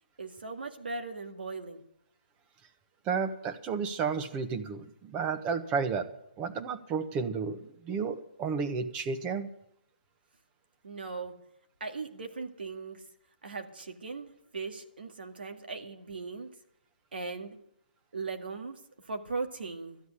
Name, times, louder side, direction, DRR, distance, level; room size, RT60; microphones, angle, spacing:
voice 1, 0.2-1.8 10.8-11.3 11.8-13.0 13.4-16.5 17.1-17.6 18.1-20.0, right 4 dB, 90° right, 5 dB, 1.9 m, -38 dB
voice 2, 3.0-6.1 6.4-9.5, right 5 dB, 20° right, 9 dB, 1.1 m, -32 dB
12.5 x 8.1 x 9.9 m, 0.75 s
hypercardioid pair, 150°, 5 cm